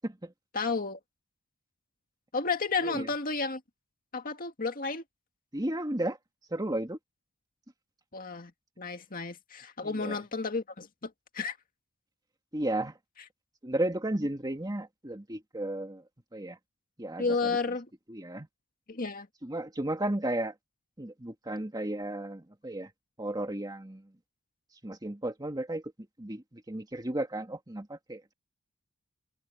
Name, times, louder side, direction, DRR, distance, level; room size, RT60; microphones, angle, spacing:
voice 1, 0.5-1.0 2.3-3.6 4.1-5.0 8.1-8.5 8.8-11.6 17.2-17.9 18.9-19.3, left 4 dB, 40° left, 2.1 m, -32 dB
voice 2, 5.5-6.2 6.5-7.0 9.8-10.2 12.5-13.0 13.6-16.6 17.0-17.7 18.1-18.5 19.4-20.5 21.0-22.9 23.2-24.2 24.8-25.9 26.2-28.3, right 1 dB, 20° right, 1.9 m, -34 dB
head